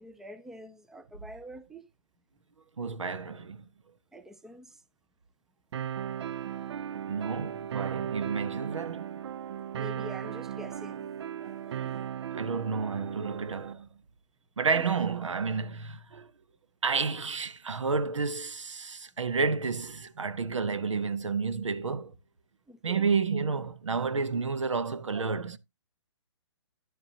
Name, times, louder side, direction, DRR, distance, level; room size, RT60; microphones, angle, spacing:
voice 1, 0.0-1.8 4.1-4.8 9.7-11.1 11.7-12.1 14.7-14.8 22.7-23.1, equal, 5° right, 0.5 m, -46 dB
voice 2, 2.8-3.6 7.1-9.1 11.4-11.9 12.3-13.9 14.6-16.3 16.8-22.1 22.8-25.6, right 5 dB, 90° right, 0.8 m, -31 dB
sound 1, 5.7-13.7, right 9 dB, 60° right, 0.4 m, -36 dB
10.5 x 7.2 x 2.8 m
hypercardioid pair, 140°, 15 cm